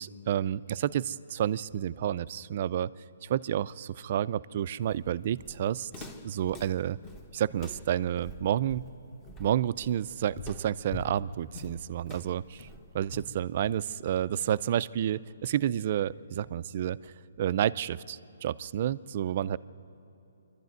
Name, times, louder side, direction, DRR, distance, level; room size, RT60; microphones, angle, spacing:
voice 1, 0.0-2.9 3.2-7.0 7.3-8.8 9.4-12.7 12.9-19.6, right 10 dB, 40° right, 17 dB, 0.4 m, -30 dB
Walk footsteps, 4.8-14.1, left 2 dB, 15° left, 1.3 m, -45 dB
26.0 x 12.0 x 9.4 m, 2.9 s
hypercardioid pair, 160°, 0 cm